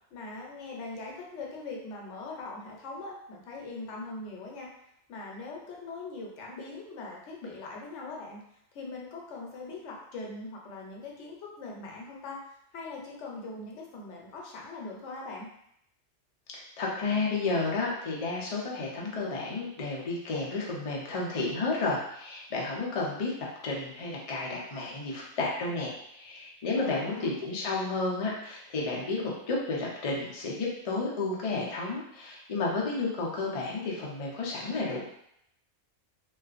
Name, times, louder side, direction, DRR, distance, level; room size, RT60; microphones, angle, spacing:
voice 1, 0.1-4.7 5.1-8.4 8.7-12.4 12.7-15.5 26.7-27.3, left 3 dB, 85° left, -2 dB, 1.0 m, -41 dB
voice 2, 16.5-23.3 23.6-35.0, left 3 dB, 45° left, -3 dB, 0.5 m, -32 dB
2.5 x 2.3 x 2.4 m, 0.75 s
omnidirectional pair, 1.2 m